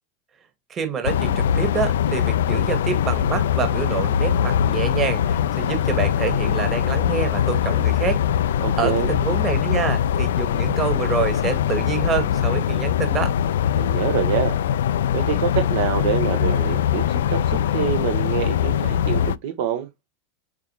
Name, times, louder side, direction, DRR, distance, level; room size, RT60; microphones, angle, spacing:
voice 1, 0.7-8.2 8.8-13.3, right 7 dB, 30° right, 2.2 m, -27 dB
sound 1, 1.0-19.4, left 9 dB, 70° left, 0.4 m, -22 dB
voice 2, 8.6-9.2 13.7-14.5 15.1-19.9, right 9 dB, 60° right, 1.1 m, -26 dB
7.3 x 4.6 x 3.0 m
figure-of-eight pair, 85°, 0 cm